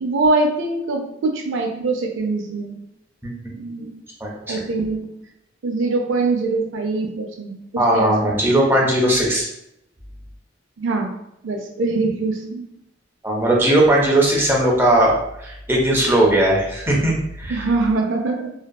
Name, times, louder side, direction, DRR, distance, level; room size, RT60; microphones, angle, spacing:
voice 1, 0.0-2.8 3.6-3.9 4.5-5.1 5.6-8.1 10.8-11.1 11.4-12.7 17.5-18.5, right 3 dB, 70° right, 4 dB, 0.4 m, -23 dB
voice 2, 4.2-4.5 7.8-9.5 13.2-17.6, right 1 dB, 10° right, -3 dB, 0.5 m, -18 dB
2.5 x 2.2 x 2.2 m, 0.81 s
head